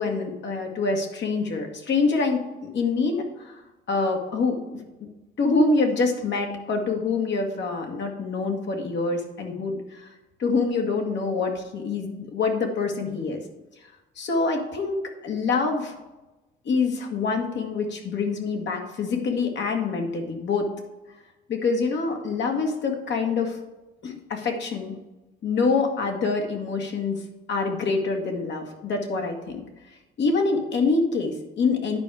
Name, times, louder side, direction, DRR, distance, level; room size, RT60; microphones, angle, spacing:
voice 1, 0.0-2.4 2.7-3.6 3.9-5.1 5.4-10.1 10.4-13.4 14.2-16.0 16.7-20.7 21.5-23.6 24.0-24.9 25.4-27.2 27.5-29.6 30.2-32.0, left 4 dB, 65° left, 3 dB, 1.7 m, -25 dB
10.5 x 4.8 x 4.7 m, 1.1 s
cardioid pair, 90°, 20 cm